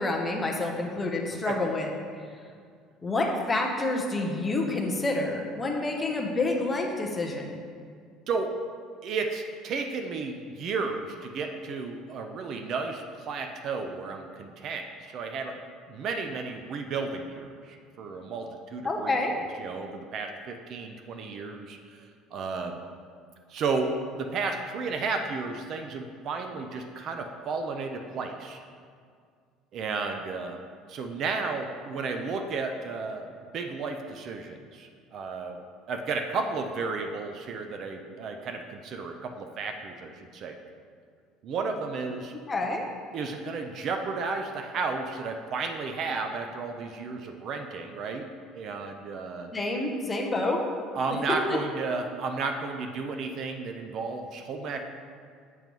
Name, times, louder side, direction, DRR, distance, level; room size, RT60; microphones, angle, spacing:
voice 1, 0.0-1.9 3.0-7.6 18.8-19.4 42.5-42.9 49.5-50.6 51.1-51.6, left 2 dB, 15° left, 1 dB, 0.5 m, -28 dB
voice 2, 8.3-8.6 9.0-15.6 15.9-19.2 19.6-22.8 23.5-28.6 29.7-35.6 35.9-40.6 41.4-42.3 43.1-48.3 48.5-49.5 50.9-54.8, right 4 dB, 35° right, 5 dB, 0.3 m, -33 dB
7.4 x 3.1 x 5.2 m, 2.1 s
cardioid pair, 175°, 0 cm